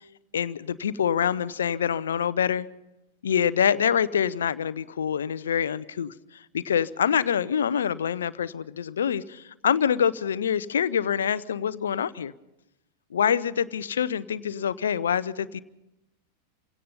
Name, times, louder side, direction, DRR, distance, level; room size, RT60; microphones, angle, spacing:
voice 1, 0.3-2.7 3.2-12.3 13.1-15.6, left 8 dB, 65° left, 18 dB, 0.6 m, -26 dB
28.0 x 17.0 x 5.5 m, 0.92 s
figure-of-eight pair, 90°, 0 cm